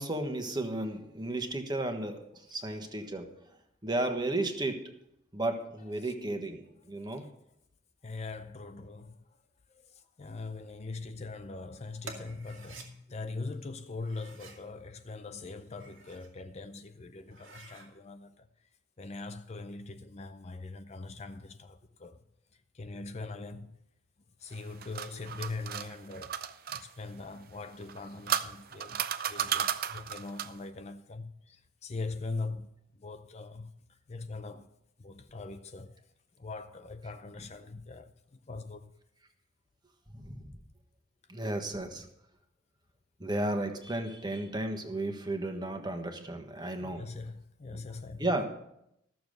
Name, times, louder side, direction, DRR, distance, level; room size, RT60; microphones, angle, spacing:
voice 1, 0.0-3.3 3.8-4.8 5.3-7.2 40.1-40.4 41.3-42.1 43.2-47.0 47.7-47.8 48.2-48.4, right 1 dB, 20° right, 1.3 m, -33 dB
voice 2, 7.0-7.3 8.0-9.2 9.7-18.5 19.0-22.2 22.5-23.8 24.4-32.7 33.0-33.7 34.1-36.1 36.4-39.0 46.8-48.3, left 3 dB, 35° left, 0.5 m, -42 dB
sound 1, 12.0-12.9 14.0-14.6 15.6-16.3 16.8-16.9 17.2-17.9, right 3 dB, 90° right, 2.2 m, -49 dB
sound 2, 24.5-26.8 27.8-30.6, right 9 dB, 50° right, 0.5 m, -34 dB
14.0 x 7.0 x 6.5 m
head